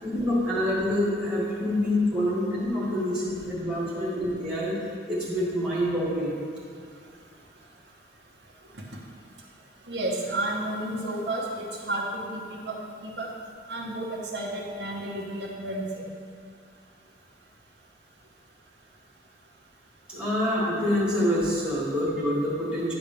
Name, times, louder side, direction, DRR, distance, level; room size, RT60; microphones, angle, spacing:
voice 1, 0.0-4.8 5.1-6.3 20.1-22.9, left 1 dB, 5° right, -7 dB, 1.8 m, -26 dB
voice 2, 9.9-12.8 13.0-13.3 13.7-16.0, right 1 dB, 70° right, -2 dB, 1.0 m, -31 dB
9.7 x 3.4 x 6.7 m, 2.2 s
head